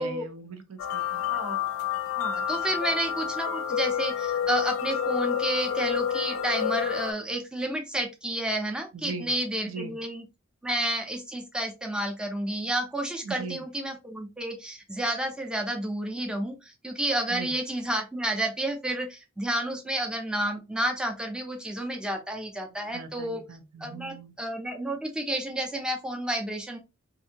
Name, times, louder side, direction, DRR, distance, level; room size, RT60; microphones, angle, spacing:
voice 1, 0.0-1.2 8.9-9.3 9.7-9.9 13.2-13.6 17.3-17.5 22.9-24.4, right 4 dB, 90° right, 0.6 m, -39 dB
sound 1, 0.8-7.1, left 8 dB, 75° left, 0.4 m, -29 dB
voice 2, 1.3-1.7 2.2-10.3 10.6-23.4 23.8-26.8, right 1 dB, 5° right, 0.4 m, -31 dB
2.7 x 2.5 x 2.7 m
head